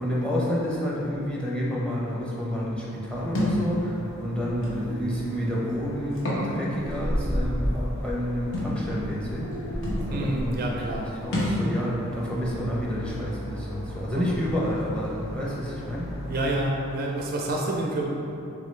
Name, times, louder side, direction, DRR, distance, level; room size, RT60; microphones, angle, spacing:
voice 1, 0.0-9.8 10.1-16.1, equal, 5° left, -5 dB, 0.7 m, -29 dB
sound 1, 3.1-16.7, equal, 25° left, 1.1 m, -36 dB
Thump thud, 3.3-3.6 4.6-4.8 6.1-6.5 6.9-7.0 8.5-8.7 9.5-9.6 9.8-10.1 11.3-11.6, left 1 dB, 60° left, 1.0 m, -27 dB
sound 2, 5.8-7.7 8.5-8.9 9.4-14.1 14.7-14.8 16.4-16.6, equal, 90° left, 0.7 m, -44 dB
voice 2, 10.1-11.1 14.1-14.2 16.3-18.1, right 1 dB, 45° right, -1 dB, 0.4 m, -28 dB
6.5 x 2.4 x 3.2 m, 2.9 s
head